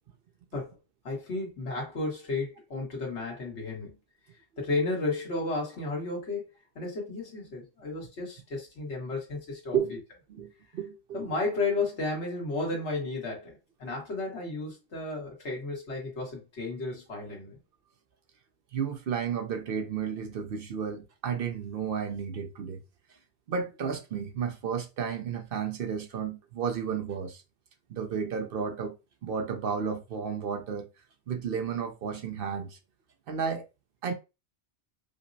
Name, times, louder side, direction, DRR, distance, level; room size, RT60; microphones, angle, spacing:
voice 1, 1.0-4.0 4.6-6.5 6.7-9.8 11.1-17.6, left 3 dB, 80° left, 1.7 m, -33 dB
voice 2, 10.3-11.3 18.7-22.8 23.5-27.4 27.9-29.0 29.2-30.9 31.3-32.8 33.3-33.7 34.0-34.1, right 7 dB, 60° right, 0.7 m, -32 dB
5.1 x 2.0 x 2.6 m
omnidirectional pair, 1.1 m